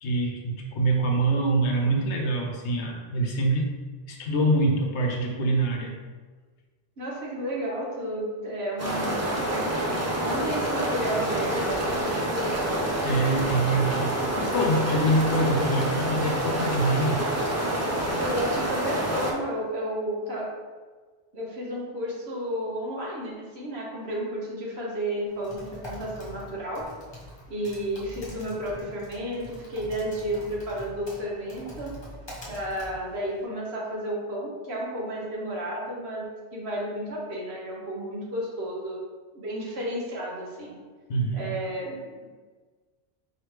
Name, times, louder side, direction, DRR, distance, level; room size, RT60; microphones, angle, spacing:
voice 1, 0.0-3.7 4.1-6.0 13.0-17.3 41.1-41.6, right 2 dB, 70° left, 1 dB, 1.0 m, -25 dB
voice 2, 7.0-9.6 10.0-12.7 18.2-20.5 21.3-26.8 27.5-31.9 32.5-39.0 39.3-40.8 41.3-42.0, equal, 60° right, -4 dB, 1.3 m, -32 dB
sound 1, 8.8-19.3, right 1 dB, 20° right, 0.5 m, -27 dB
Typing, 25.3-33.5, equal, 25° left, 0.9 m, -44 dB
4.7 x 3.3 x 3.2 m, 1.4 s
omnidirectional pair, 1.2 m